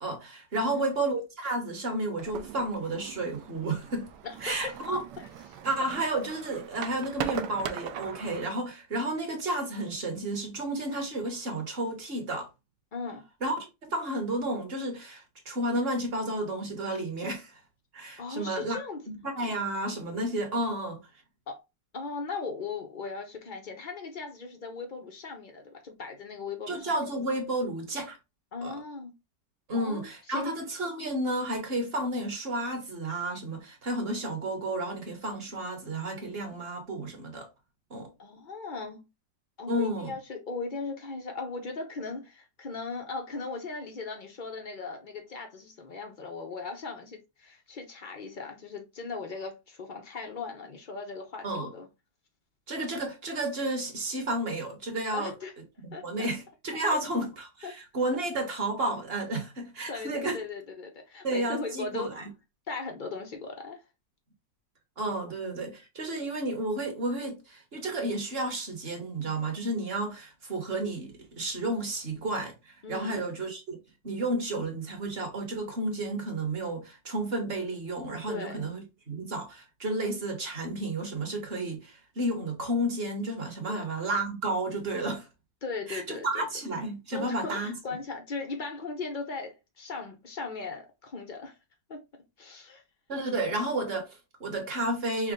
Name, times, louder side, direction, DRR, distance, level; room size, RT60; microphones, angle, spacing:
voice 1, 0.0-4.1 4.4-5.0 5.6-12.5 13.4-17.6 17.9-18.8 19.4-21.0 26.7-28.2 28.6-28.8 29.7-37.5 37.9-38.1 39.7-40.1 51.4-51.7 52.7-55.3 55.8-60.4 61.2-62.3 65.0-73.8 74.0-85.3 85.9-87.8 93.1-95.3, right 1 dB, 40° right, 1.2 m, -32 dB
voice 2, 0.6-1.0 4.2-4.8 5.5-5.6 12.9-13.3 18.2-19.0 21.5-21.6 21.9-26.9 28.5-29.1 29.7-30.5 38.2-39.0 39.6-51.9 55.1-55.5 55.9-56.3 56.9-57.0 57.6-57.7 59.9-62.1 62.7-63.8 72.8-73.2 78.3-78.7 83.7-83.9 85.6-86.5 87.1-91.5 91.9-92.0 92.4-92.8, left 4 dB, 65° left, 0.4 m, -38 dB
sound 1, 2.2-8.5, right 9 dB, 75° right, 1.2 m, -39 dB
5.9 x 2.2 x 3.6 m
omnidirectional pair, 1.9 m